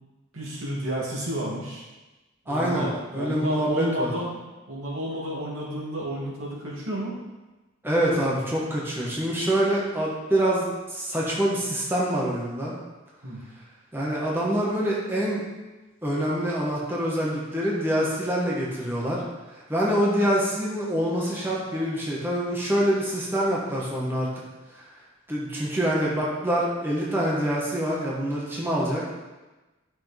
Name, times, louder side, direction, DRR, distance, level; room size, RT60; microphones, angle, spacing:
voice 1, 0.3-1.8 2.5-4.4 4.7-7.1 13.2-13.4, equal, 85° right, -5 dB, 2.6 m, -31 dB
voice 2, 2.5-2.9 3.1-4.1 7.8-12.7 13.9-15.4 16.0-19.2 19.5-24.3 24.7-24.8 25.3-29.0, right 1 dB, 10° right, -6 dB, 1.5 m, -25 dB
10.0 x 6.2 x 3.5 m, 1.1 s
head